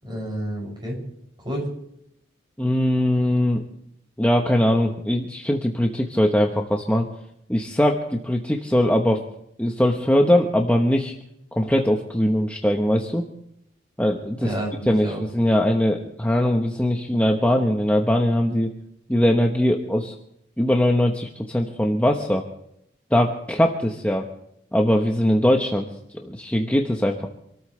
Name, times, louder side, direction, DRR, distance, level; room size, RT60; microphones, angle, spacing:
voice 1, 0.0-1.0 1.4-1.7 14.4-15.2, right 1 dB, 25° right, -1 dB, 7.0 m, -30 dB
voice 2, 2.6-3.6 4.2-7.1 7.5-9.2 9.6-11.1 11.5-13.2 14.0-14.5 14.9-18.7 19.1-20.1 20.6-22.4 23.1-24.2 24.7-25.9 26.2-27.3, equal, 10° left, 1 dB, 1.1 m, -21 dB
27.5 x 13.5 x 3.3 m, 0.76 s
head